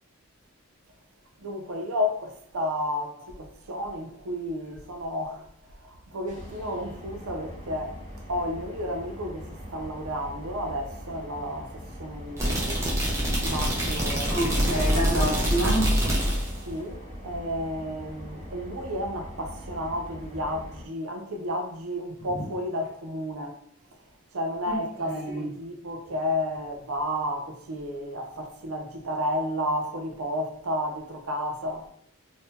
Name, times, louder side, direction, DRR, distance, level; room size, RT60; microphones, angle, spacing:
voice 1, 1.4-5.5 5.8-8.0 8.3-12.8 13.4-14.8 16.7-23.6 24.3-31.9, equal, 75° right, 0.6 m, -32 dB
sound 1, 6.3-20.8, equal, 35° right, 1.0 m, -42 dB
sound 2, 12.4-16.6, equal, 15° right, 0.6 m, -25 dB
voice 2, 14.3-16.0 24.7-24.8 25.0-25.5, right 1 dB, 70° left, 1.1 m, -28 dB
2.7 x 2.7 x 3.6 m
head